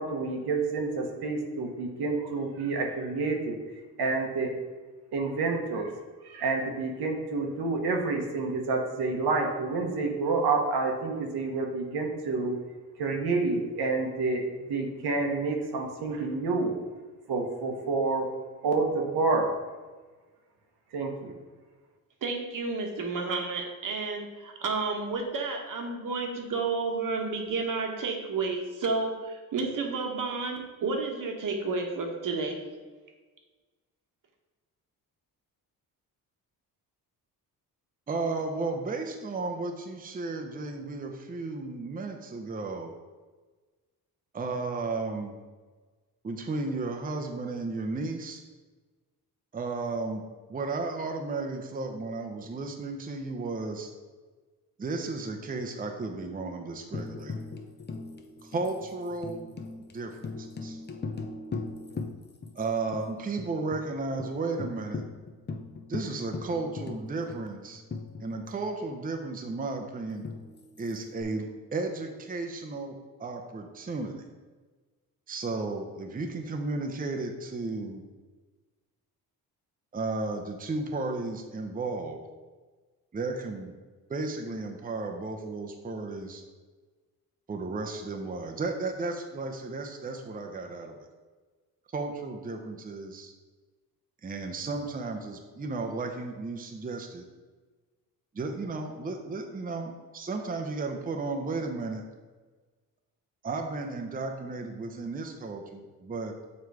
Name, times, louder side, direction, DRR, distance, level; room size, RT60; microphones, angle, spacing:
voice 1, 0.0-3.6 4.0-4.5 5.1-5.9 6.2-12.6 13.0-16.7 17.3-18.3 18.6-19.5 20.9-21.3, right 3 dB, 75° right, 2 dB, 1.1 m, -28 dB
voice 2, 22.2-32.6, right 4 dB, 55° right, 3 dB, 1.2 m, -31 dB
voice 3, 38.1-42.9 44.3-45.4 46.2-48.4 49.5-53.9 54.8-57.4 58.4-59.5 59.8-60.8 62.5-65.1 65.9-67.8 68.2-70.3 70.8-74.2 75.3-78.0 79.9-82.2 83.1-83.7 84.1-86.4 87.5-90.9 91.9-93.3 94.2-97.2 98.3-102.0 103.4-106.4, right 3 dB, 20° right, 3 dB, 0.7 m, -34 dB
Tambourine, 56.9-62.6 62.9-63.0 63.4-63.8 64.2-64.3 64.6-68.7 70.2-71.2, left 4 dB, 25° left, 0.7 m, -39 dB
7.2 x 3.1 x 4.7 m, 1.3 s
cardioid pair, 80°, 38 cm